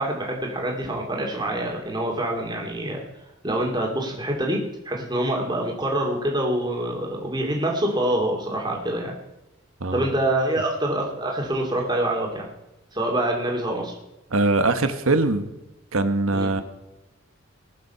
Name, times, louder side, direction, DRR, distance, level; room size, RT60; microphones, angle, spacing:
voice 1, 0.0-3.0 3.4-9.1 9.9-12.4 12.9-13.9 16.3-16.5, right 1 dB, 20° right, 0 dB, 2.4 m, -26 dB
voice 2, 14.3-15.5 15.9-16.6, right 2 dB, 75° right, 9 dB, 1.2 m, -22 dB
20.0 x 7.0 x 5.7 m, 0.94 s
head